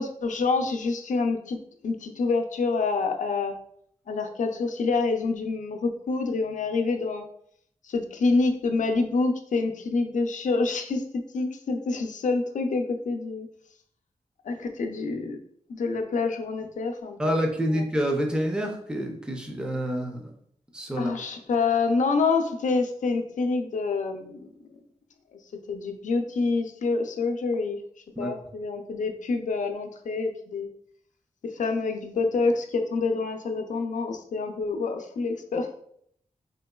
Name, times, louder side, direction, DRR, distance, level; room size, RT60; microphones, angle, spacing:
voice 1, 0.0-1.6 1.8-3.5 4.1-7.2 7.8-11.0 11.3-13.5 14.4-15.4 15.7-17.4 17.7-17.8 21.0-24.5 25.7-27.8 28.2-30.7 31.5-35.7, left 4 dB, 80° left, 5 dB, 0.4 m, -27 dB
voice 2, 17.2-20.3 20.7-21.1 28.2-28.3, equal, 5° right, 2 dB, 0.4 m, -27 dB
3.8 x 2.9 x 2.2 m, 0.68 s
wide cardioid pair, 150°, 13 cm